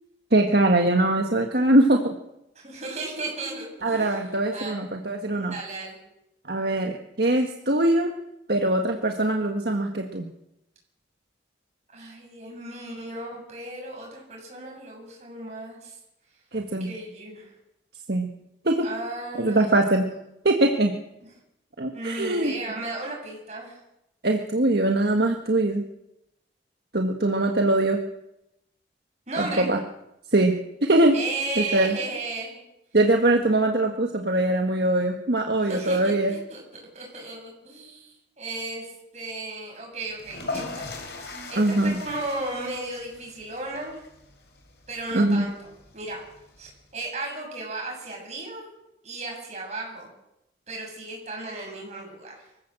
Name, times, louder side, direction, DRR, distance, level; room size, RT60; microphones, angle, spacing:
voice 1, 0.3-2.1 3.8-5.5 6.5-8.1 8.5-10.3 16.5-16.9 18.1-18.3 18.7-18.9 19.4-20.1 20.5-20.9 21.8-22.5 24.2-25.9 26.9-28.0 29.4-29.8 30.3-31.2 31.6-32.0 32.9-36.4 41.6-42.0 45.1-45.5, right 1 dB, 60° right, 3 dB, 1.6 m, -22 dB
voice 2, 2.6-4.2 4.5-4.8 5.4-6.0 11.9-16.0 16.8-17.5 18.8-19.7 21.9-23.8 29.3-29.7 31.1-32.6 35.6-36.6 36.9-40.9 41.2-44.0 44.9-46.2 46.6-48.7 49.0-50.1 50.7-52.4, right 2 dB, 40° right, 0 dB, 7.7 m, -35 dB
sound 1, 40.1-46.9, left 3 dB, 70° left, 4.6 m, -40 dB
24.5 x 15.5 x 7.7 m, 0.86 s
head